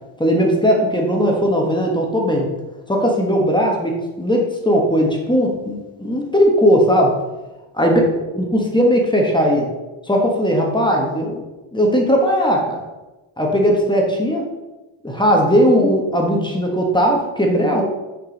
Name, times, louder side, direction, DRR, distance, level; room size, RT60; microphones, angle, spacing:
voice 1, 0.2-2.5 2.9-7.2 7.7-8.0 8.3-9.7 10.0-11.4 11.7-12.8 13.4-14.5 15.0-17.8, equal, 10° left, 0 dB, 1.3 m, -17 dB
6.7 x 5.3 x 5.2 m, 1.1 s
wide cardioid pair, 140°, 47 cm